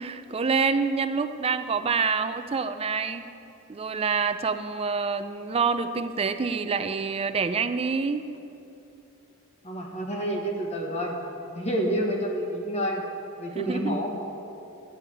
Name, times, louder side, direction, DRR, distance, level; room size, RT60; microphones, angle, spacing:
voice 1, 0.0-3.2 3.7-8.3 13.5-14.0, right 5 dB, 30° right, 10 dB, 0.4 m, -27 dB
voice 2, 9.6-11.1 11.5-13.0 13.4-14.1, equal, 30° left, 0 dB, 1.3 m, -28 dB
12.0 x 4.9 x 8.5 m, 2.8 s
head